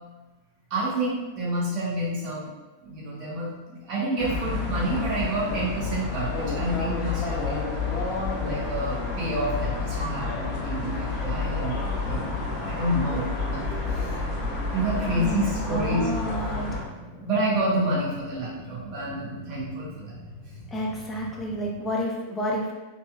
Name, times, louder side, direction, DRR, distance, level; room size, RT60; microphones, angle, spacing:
voice 1, 0.7-2.5 2.8-7.7 8.4-14.2 14.7-16.2 17.2-20.1, right 1 dB, 40° right, -6 dB, 1.4 m, -29 dB
sound 1, 4.2-16.8, left 3 dB, 40° left, 1.1 m, -29 dB
sound 2, 14.7-22.0, equal, 75° left, 1.0 m, -45 dB
voice 2, 15.0-16.8 20.7-22.7, equal, 20° left, -1 dB, 0.7 m, -30 dB
4.1 x 2.9 x 2.4 m, 1.2 s
figure-of-eight pair, 90°, 0 cm